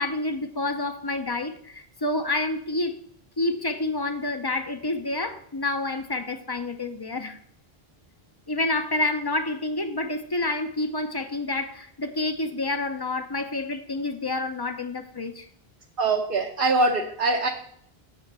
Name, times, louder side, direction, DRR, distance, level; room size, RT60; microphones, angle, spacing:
voice 1, 0.0-3.0 3.4-7.4 8.5-15.5, left 2 dB, 25° left, 8 dB, 0.7 m, -28 dB
voice 2, 16.0-17.5, right 3 dB, 60° right, 0 dB, 1.1 m, -23 dB
7.8 x 5.3 x 6.1 m, 0.65 s
omnidirectional pair, 1.1 m